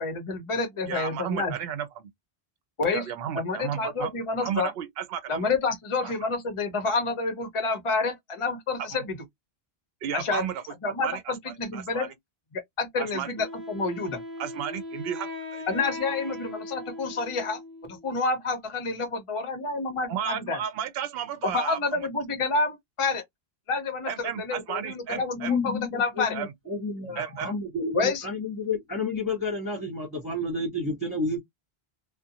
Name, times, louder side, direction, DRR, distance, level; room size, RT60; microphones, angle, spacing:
voice 1, 0.0-1.5 2.8-3.1 3.3-4.7 5.3-9.2 10.1-10.5 10.8-12.1 12.5-14.2 15.7-20.6 21.4-23.2 23.7-26.3 27.9-28.2, left 3 dB, 35° left, 0.6 m, -29 dB
voice 2, 0.9-2.1 2.9-4.1 4.4-5.4 6.0-6.1 8.8-8.9 10.0-10.6 11.0-11.2 11.7-12.1 13.0-13.3 14.4-15.9 20.1-22.1 24.1-25.5 26.3-26.5 27.2-27.5, right 9 dB, 70° right, 0.8 m, -33 dB
Wind instrument woodwind instrument, 13.4-18.2, left 1 dB, 40° right, 0.9 m, -39 dB
voice 3, 25.1-31.4, left 3 dB, 20° left, 1.0 m, -30 dB
2.4 x 2.1 x 2.7 m
omnidirectional pair, 1.1 m